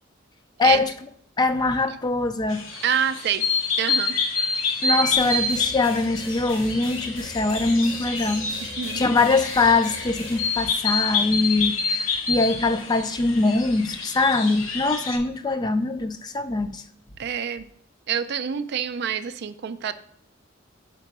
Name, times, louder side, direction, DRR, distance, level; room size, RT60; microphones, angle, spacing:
voice 1, 0.6-0.9 1.4-2.6 4.8-8.5 9.0-16.8, left 3 dB, 20° left, 9 dB, 0.4 m, -22 dB
sound 1, 2.5-15.2, left 4 dB, 80° left, 1.2 m, -28 dB
voice 2, 2.8-3.4 3.8-4.1 8.8-9.0 17.2-17.7 18.1-19.9, right 8 dB, 55° right, 12 dB, 0.4 m, -26 dB
sound 2, 5.2-10.4, left 1 dB, 65° left, 2.0 m, -40 dB
4.8 x 4.5 x 5.9 m, 0.63 s
head